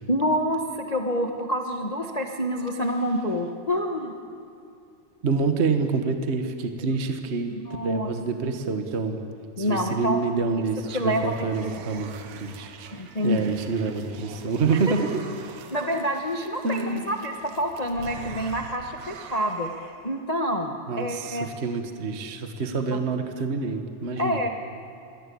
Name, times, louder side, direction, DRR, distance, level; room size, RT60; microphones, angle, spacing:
voice 1, 0.1-4.1 7.5-8.1 9.6-10.2 10.9-11.3 12.9-13.5 14.8-14.9 15.7-21.5 24.2-24.5, equal, 65° left, 3 dB, 0.4 m, -27 dB
voice 2, 5.2-7.5 7.8-9.2 9.6-12.8 13.2-15.2 16.6-17.0 20.9-24.4, right 4 dB, 35° right, 6 dB, 1.0 m, -27 dB
sound 1, 10.2-20.2, right 7 dB, 70° right, 2.6 m, -44 dB
27.0 x 21.5 x 8.6 m, 2.6 s
omnidirectional pair, 3.4 m